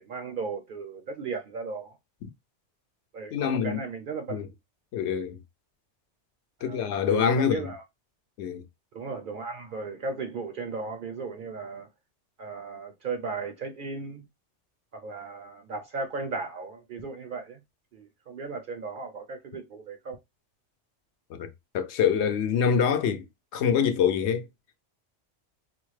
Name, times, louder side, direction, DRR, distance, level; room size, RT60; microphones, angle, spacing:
voice 1, 0.0-1.9 3.1-4.4 6.6-6.8 7.1-7.8 8.9-11.9 12.4-14.2 14.9-17.6 17.9-20.2, right 4 dB, 60° right, 0.6 m, -36 dB
voice 2, 3.3-3.8 4.3-4.5 4.9-5.4 6.6-7.6 8.4-8.6 21.3-23.2 23.5-24.5, left 7 dB, 70° left, 0.8 m, -25 dB
4.2 x 2.1 x 3.1 m
omnidirectional pair, 1.2 m